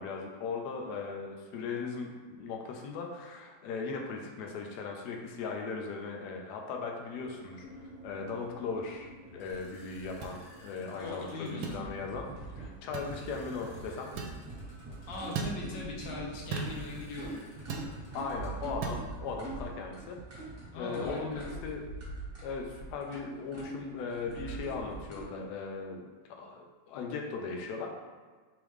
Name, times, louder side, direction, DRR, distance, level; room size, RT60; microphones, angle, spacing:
voice 1, 0.0-14.1 18.1-20.2 20.8-21.9 22.4-26.1 26.4-27.9, left 4 dB, 75° left, 1 dB, 1.0 m, -38 dB
sound 1, 7.5-18.8, equal, 45° left, 1.8 m, -53 dB
sound 2, 10.2-10.4 11.6-11.8 12.9-13.1 14.2-14.4 15.3-15.6 16.5-16.8 17.7-17.9 18.8-19.0, right 5 dB, 85° right, 1.3 m, -36 dB
voice 2, 11.0-11.8 15.1-17.3 20.7-21.4, left 3 dB, 90° left, -2 dB, 1.6 m, -40 dB
sound 3, 11.6-25.2, right 3 dB, 35° right, 1.2 m, -43 dB
3.5 x 3.4 x 3.1 m, 1.4 s
omnidirectional pair, 2.0 m